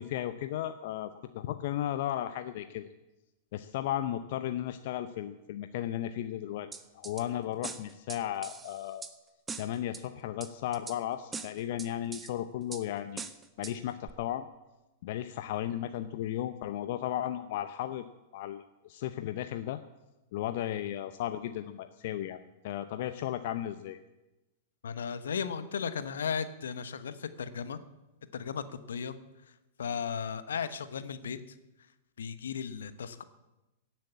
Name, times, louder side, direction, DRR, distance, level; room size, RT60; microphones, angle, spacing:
voice 1, 0.0-2.9 3.5-6.7 6.9-9.0 9.6-13.3 13.6-14.5 15.0-18.0 18.3-19.8 20.3-24.0, left 12 dB, 55° left, 10 dB, 0.7 m, -35 dB
sound 1, 6.7-7.2 7.6-9.1 9.5-10.0 10.4-11.0 11.3-12.3 12.7-12.8 13.2-13.7 14.1-14.2, right 4 dB, 15° right, 1.1 m, -41 dB
voice 2, 24.8-27.8 28.3-29.1 29.8-31.4 32.2-33.2, left 7 dB, 75° left, 12 dB, 1.1 m, -35 dB
16.5 x 7.8 x 8.4 m, 1.0 s
figure-of-eight pair, 105°, 0 cm